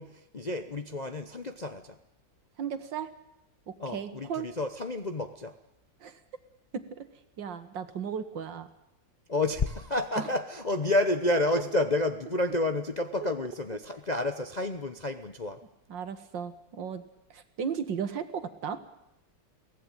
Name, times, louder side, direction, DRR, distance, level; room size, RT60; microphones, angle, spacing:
voice 1, 0.0-2.0 3.8-5.6 9.3-15.6, left 2 dB, 35° left, 7 dB, 0.7 m, -30 dB
voice 2, 2.6-3.1 3.7-4.5 6.0-6.2 6.7-7.1 7.4-8.7 10.2-10.3 15.9-17.0 17.3-18.8, right 7 dB, 70° right, 10 dB, 2.1 m, -35 dB
23.5 x 17.5 x 9.0 m, 0.86 s
omnidirectional pair, 2.1 m